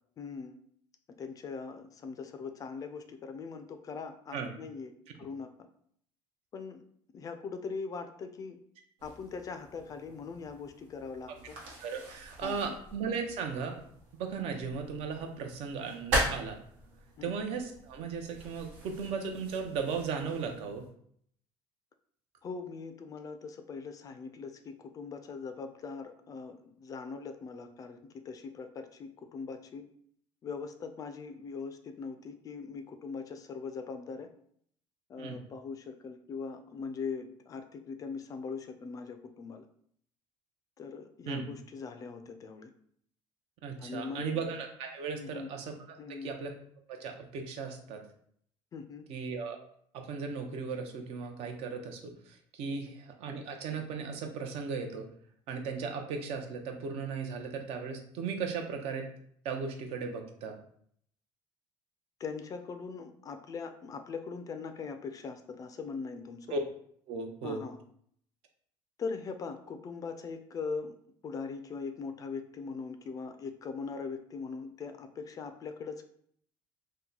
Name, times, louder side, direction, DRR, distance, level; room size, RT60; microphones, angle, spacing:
voice 1, 0.2-0.6 1.2-4.9 5.2-5.5 6.5-6.8 7.1-8.6 9.0-11.6 12.4-12.8 17.2-17.3 22.4-29.9 30.4-34.3 35.1-39.6 40.8-42.7 43.8-44.4 45.2-45.5 46.0-46.3 48.7-49.0 52.7-52.8 62.2-66.6 67.4-67.8 69.0-71.0 71.2-76.1, left 5 dB, 35° left, 8 dB, 0.3 m, -41 dB
sound 1, 9.0-20.9, right 1 dB, 90° right, 1.1 m, -40 dB
voice 2, 11.8-13.8 14.1-16.6 17.2-20.8 35.2-35.4 41.3-41.4 43.6-46.0 46.2-46.5 46.9-48.0 49.1-49.6 49.9-55.1 55.5-59.0 59.4-60.6 66.5-66.6 67.1-67.6, right 5 dB, 65° right, 4 dB, 0.6 m, -36 dB
2.9 x 2.2 x 3.8 m, 0.64 s
cardioid pair, 120°, 11 cm